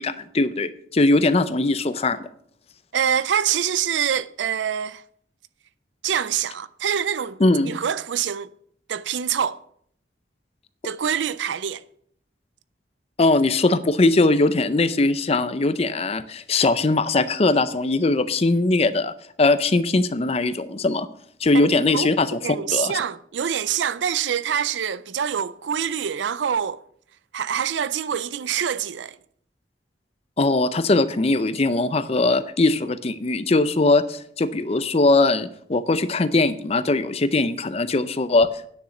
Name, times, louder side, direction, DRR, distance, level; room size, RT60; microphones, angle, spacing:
voice 1, 0.0-2.3 7.4-7.8 13.2-21.1 21.4-22.9 30.4-38.7, left 2 dB, 35° left, 0.5 m, -20 dB
voice 2, 2.9-5.0 6.0-7.4 7.6-8.5 8.9-9.6 10.8-11.8 21.6-22.1 22.4-26.8 27.3-29.2, right 8 dB, 80° right, 0.4 m, -25 dB
9.6 x 6.6 x 6.9 m
head